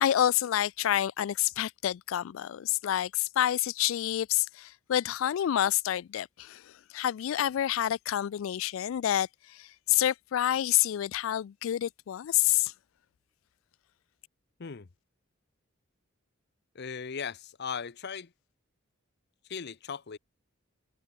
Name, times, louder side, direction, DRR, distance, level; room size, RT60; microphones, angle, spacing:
voice 1, 0.0-12.7, left 12 dB, 75° left, 0.3 m, -28 dB
voice 2, 16.7-18.3 19.5-20.2, left 6 dB, 55° left, 0.7 m, -38 dB
head